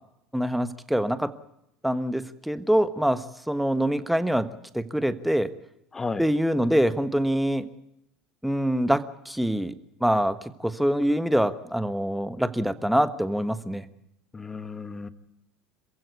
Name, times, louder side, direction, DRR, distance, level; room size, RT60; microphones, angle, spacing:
voice 1, 0.3-1.3 1.8-4.5 4.7-5.5 6.2-7.7 8.4-13.8, equal, ahead, 12 dB, 1.3 m, -25 dB
voice 2, 5.9-6.2 14.3-15.1, left 4 dB, 20° left, 12 dB, 1.4 m, -33 dB
27.0 x 15.5 x 8.2 m, 0.83 s
figure-of-eight pair, 70°, 2 cm